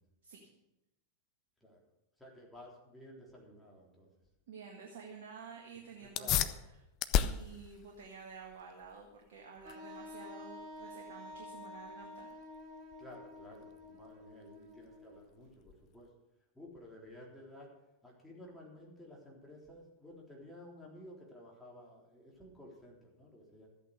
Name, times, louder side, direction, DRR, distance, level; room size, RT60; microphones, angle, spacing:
voice 1, 2.2-4.1 6.2-6.5 13.0-16.1 16.5-17.7 18.0-23.7, left 1 dB, 5° left, -3 dB, 3.6 m, -53 dB
voice 2, 4.5-6.8 7.2-12.3, right 5 dB, 60° right, 1 dB, 1.8 m, -51 dB
sound 1, 6.0-16.1, left 10 dB, 40° left, 0.6 m, -38 dB
Wind instrument woodwind instrument, 9.6-15.4, left 1 dB, 40° right, 1.9 m, -50 dB
13.5 x 8.7 x 6.5 m, 0.93 s
figure-of-eight pair, 90°, 0 cm